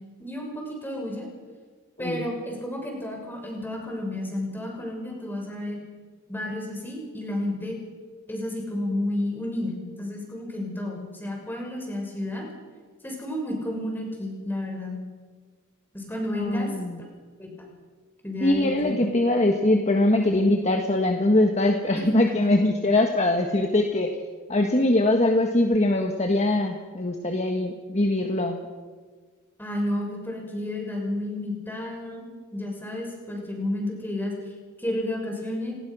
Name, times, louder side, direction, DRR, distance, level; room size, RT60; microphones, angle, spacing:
voice 1, 0.2-1.3 2.0-5.8 6.3-7.8 8.3-12.5 13.0-15.0 15.9-16.7 17.4-17.7 18.2-19.3 22.3-22.5 23.5-23.6 29.6-34.3 34.8-35.7, left 1 dB, 10° left, 0 dB, 6.2 m, -31 dB
voice 2, 16.4-17.0 18.4-24.2 24.5-28.6, left 1 dB, 30° left, 3 dB, 1.5 m, -22 dB
29.0 x 19.0 x 6.3 m, 1.5 s
head